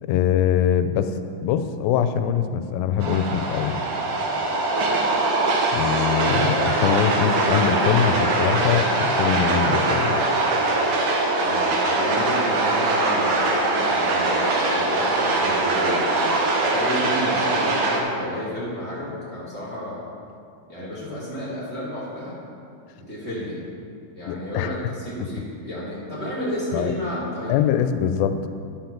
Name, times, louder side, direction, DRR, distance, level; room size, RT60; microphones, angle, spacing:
voice 1, 0.0-1.1 1.4-3.8 5.7-10.2 24.3-24.8 25.2-25.3 26.7-26.9 27.5-28.5, left 9 dB, 85° left, 9 dB, 2.3 m, -23 dB
sound 1, 3.0-18.0, right 2 dB, 90° right, 1.2 m, -22 dB
voice 2, 11.4-16.2 16.7-20.0 20.7-22.4 23.0-23.6 24.1-27.5, equal, 25° right, -8 dB, 1.7 m, -31 dB
10.5 x 5.7 x 5.9 m, 2.3 s
omnidirectional pair, 4.1 m